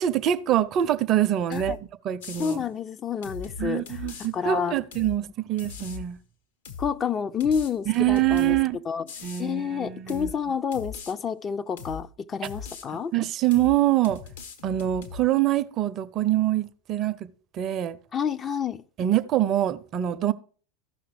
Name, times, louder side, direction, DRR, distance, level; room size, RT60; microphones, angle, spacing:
voice 1, 0.0-1.8 2.0-2.6 3.6-6.2 7.9-8.8 9.2-10.3 13.1-14.2 14.6-17.3 17.5-18.0 19.0-20.3, right 13 dB, 40° right, 0.5 m, -24 dB
sound 1, 1.5-1.8 2.2-2.6 3.2-4.3 4.9-5.2 5.6-6.1 6.6-6.9 7.4-8.6 9.1-9.5 10.1-10.4 10.7-11.1 11.8-12.0 12.4-12.9 13.5-13.8 14.0-15.2, left 6 dB, 65° left, 1.1 m, -39 dB
voice 2, 2.4-4.8 6.8-8.6 8.9-9.0 9.4-13.1 18.1-18.8, left 7 dB, 30° left, 0.4 m, -29 dB
14.5 x 5.8 x 3.2 m
figure-of-eight pair, 85°, 0 cm